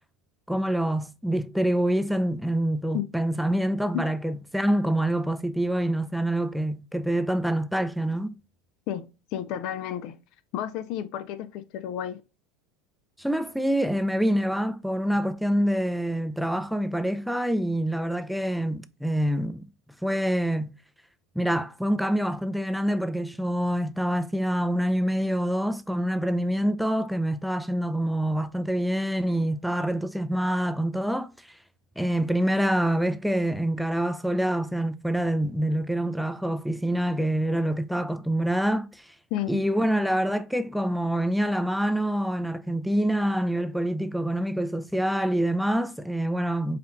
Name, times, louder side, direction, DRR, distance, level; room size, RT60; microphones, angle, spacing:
voice 1, 0.5-8.3 13.2-19.7 20.0-20.7 21.4-31.3 32.0-39.1 39.5-46.8, right 1 dB, ahead, 0.4 m, -26 dB
voice 2, 8.9-10.2 10.5-12.2 39.3-39.6, left 10 dB, 60° left, 0.4 m, -32 dB
5.6 x 2.4 x 2.5 m
hypercardioid pair, 85°, 0 cm